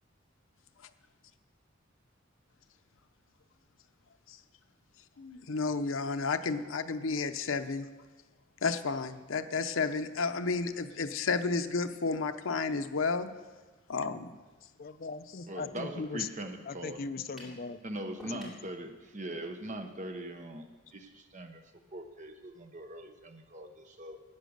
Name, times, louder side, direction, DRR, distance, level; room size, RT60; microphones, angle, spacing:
voice 1, 5.2-7.9 8.6-13.3 13.9-14.3, left 4 dB, 85° left, 9 dB, 0.7 m, -31 dB
voice 2, 14.8-16.3 16.7-17.8 18.3-18.5, left 4 dB, 50° left, 10 dB, 0.5 m, -39 dB
voice 3, 15.5-17.1 17.8-21.6 21.9-24.2, right 1 dB, 40° right, 6 dB, 1.0 m, -41 dB
sound 1, 17.4-17.6 18.2-18.6, equal, ahead, 2.8 m, -48 dB
11.5 x 9.2 x 6.5 m, 1.3 s
head